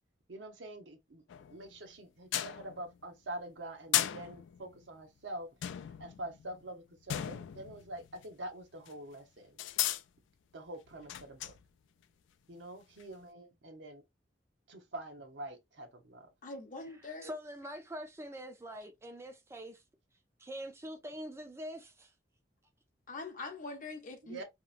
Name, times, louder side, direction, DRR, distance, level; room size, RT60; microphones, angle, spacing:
voice 1, 0.3-1.2 1.5-5.5 6.0-9.5 10.5-11.5 12.5-14.0 14.7-16.3 24.2-24.4, right 1 dB, 80° right, 0.7 m, -45 dB
sound 1, 1.3-1.9 2.3-3.1 3.9-4.9 5.6-8.5 8.9-9.0 9.6-10.0 10.9-11.6 13.0-13.1, left 12 dB, 85° left, 0.3 m, -36 dB
voice 2, 16.4-17.3 23.1-24.4, left 3 dB, 45° left, 0.7 m, -43 dB
voice 3, 17.2-19.8 20.4-22.1, equal, 15° right, 0.4 m, -44 dB
2.8 x 2.0 x 2.4 m
head